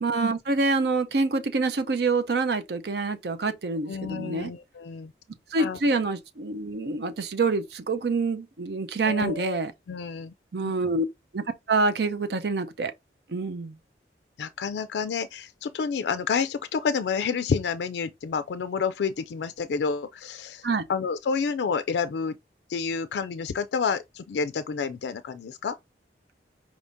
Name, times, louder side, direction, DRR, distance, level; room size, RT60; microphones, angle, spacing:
voice 1, 0.0-4.5 5.5-9.7 10.5-11.0 11.3-12.9 13.3-13.8 20.6-20.8, right 3 dB, 70° right, 0.5 m, -26 dB
voice 2, 3.9-5.1 5.6-5.8 9.0-9.6 9.9-10.3 10.6-10.7 14.4-22.3 22.7-25.8, left 5 dB, 80° left, 0.3 m, -29 dB
4.9 x 3.5 x 2.6 m
head